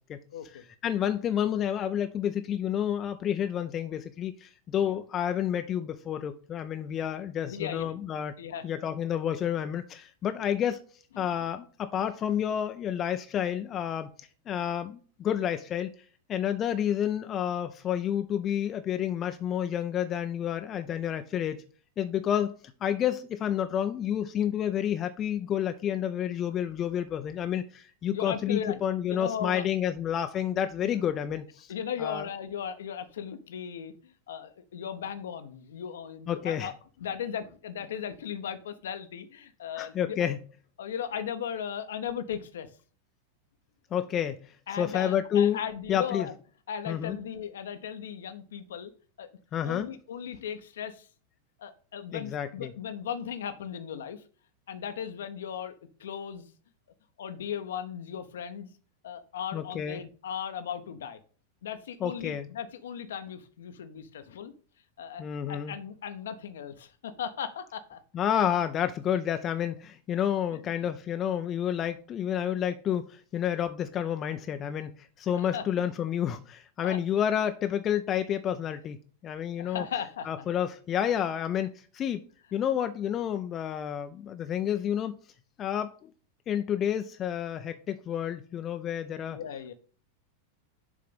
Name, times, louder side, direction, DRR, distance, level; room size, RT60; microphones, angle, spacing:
voice 1, 0.3-0.6 4.8-5.0 7.4-7.9 8.4-8.7 11.1-11.3 28.1-28.8 29.1-29.7 30.8-30.9 31.7-36.7 37.0-40.2 40.8-42.7 44.7-46.3 46.7-48.9 49.2-49.3 49.6-51.1 51.6-54.2 54.7-55.7 56.0-56.4 57.2-58.7 59.0-61.2 61.6-64.5 65.0-68.0 70.5-70.7 71.8-71.9 75.3-75.8 76.8-77.0 79.6-80.5 89.3-89.7, left 8 dB, 60° left, 0.8 m, -37 dB
voice 2, 0.8-8.3 8.6-10.8 11.2-14.1 14.5-15.9 16.3-21.6 22.0-31.7 32.0-32.3 36.3-36.7 39.8-40.4 43.9-44.4 44.8-45.6 45.9-46.3 46.9-47.2 49.5-49.9 52.1-52.7 59.5-60.0 62.0-62.5 65.2-65.8 68.1-79.8 80.3-82.2 82.5-85.2 85.6-85.9 86.5-89.4, left 9 dB, 30° left, 0.5 m, -30 dB
7.1 x 3.8 x 5.1 m
figure-of-eight pair, 90°, 0 cm